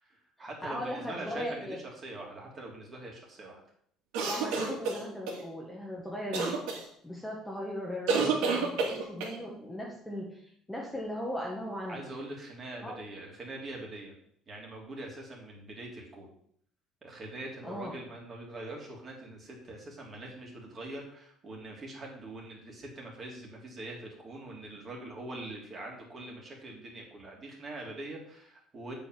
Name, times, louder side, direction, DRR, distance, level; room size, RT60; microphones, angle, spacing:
voice 1, 0.0-3.6 11.9-14.2 14.5-16.3 17.0-28.9, right 2 dB, 30° right, -1 dB, 3.0 m, -43 dB
voice 2, 0.6-1.8 4.2-6.6 7.0-12.0 12.8-12.9 17.6-17.9, equal, 5° left, -2 dB, 1.5 m, -38 dB
sound 1, 4.1-5.4 6.3-6.8 8.1-9.4, right 4 dB, 85° right, 2.8 m, -29 dB
8.1 x 5.2 x 7.6 m, 0.66 s
cardioid pair, 150°, 0 cm